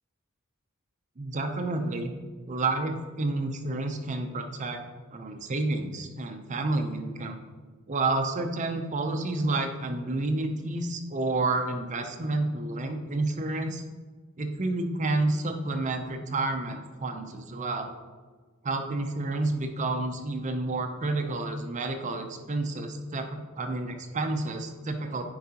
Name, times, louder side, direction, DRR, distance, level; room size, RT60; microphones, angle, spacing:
voice 1, 1.2-2.1 2.5-4.8 5.1-7.4 7.9-13.8 14.4-17.9 18.6-25.2, right 2 dB, 35° right, 5 dB, 0.5 m, -30 dB
9.6 x 4.7 x 2.9 m, 1.4 s
head